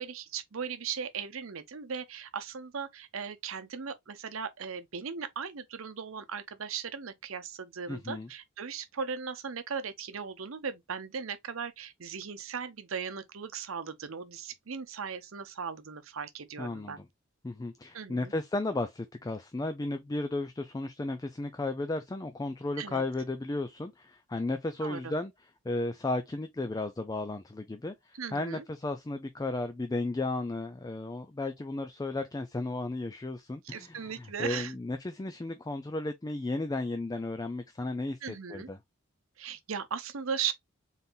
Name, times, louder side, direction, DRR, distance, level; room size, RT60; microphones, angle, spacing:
voice 1, 0.0-17.0 17.9-18.3 22.8-23.0 24.8-25.2 28.2-28.6 33.6-34.8 38.2-38.7 39.4-40.5, right 6 dB, 75° right, 0.8 m, -38 dB
voice 2, 7.9-8.3 16.6-17.1 17.4-25.3 25.6-38.8, left 2 dB, 15° left, 0.3 m, -34 dB
4.1 x 3.7 x 2.6 m
head